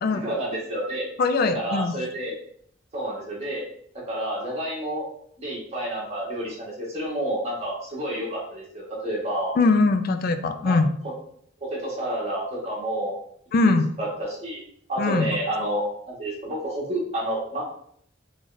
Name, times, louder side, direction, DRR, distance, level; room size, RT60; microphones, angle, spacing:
voice 1, 0.1-1.1 1.5-2.4 2.9-3.6 4.1-5.1 5.4-9.5 10.6-10.7 11.6-13.1 13.6-14.6 14.9-17.7, right 1 dB, 35° right, -5 dB, 1.4 m, -29 dB
voice 2, 1.2-1.9 9.6-10.9 13.5-13.9 15.0-15.4, left 3 dB, 50° left, 9 dB, 0.4 m, -21 dB
3.9 x 3.2 x 2.5 m, 0.66 s
head